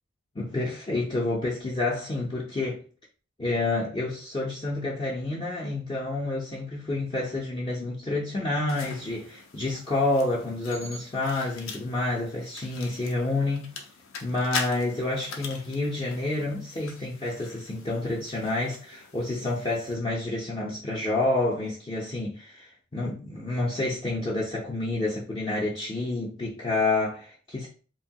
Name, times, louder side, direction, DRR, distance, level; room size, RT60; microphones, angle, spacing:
voice 1, 0.4-2.8 3.4-13.7 14.2-27.7, left 2 dB, 25° left, 0.5 m, -29 dB
sound 1, 8.7-19.9, left 5 dB, 80° left, 0.6 m, -42 dB
2.9 x 2.2 x 2.7 m
head